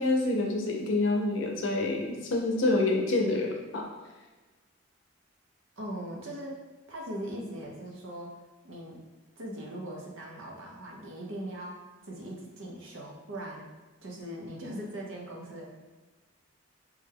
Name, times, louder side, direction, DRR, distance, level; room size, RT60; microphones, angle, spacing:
voice 1, 0.0-3.8, left 2 dB, 65° left, 1 dB, 0.6 m, -27 dB
voice 2, 5.8-6.6 6.9-8.4 8.6-9.0 9.4-13.7 14.0-15.7, right 1 dB, 75° right, -1 dB, 0.7 m, -40 dB
3.4 x 2.2 x 3.4 m, 1.2 s
head